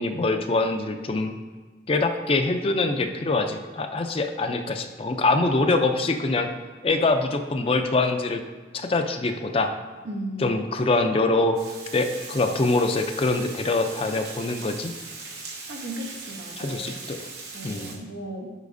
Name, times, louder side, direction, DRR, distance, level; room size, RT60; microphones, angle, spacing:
voice 1, 0.0-1.4 1.9-6.5 6.8-8.4 8.7-9.7 10.4-11.6 11.9-14.9 16.6-17.2 17.6-17.9, left 2 dB, 30° left, 6 dB, 0.4 m, -24 dB
voice 2, 10.0-10.5 15.7-16.9 17.5-18.5, right 1 dB, 90° right, 0 dB, 1.1 m, -35 dB
Water, 11.6-18.0, right 4 dB, 65° right, 1.2 m, -40 dB
8.1 x 5.0 x 2.6 m, 1.4 s
head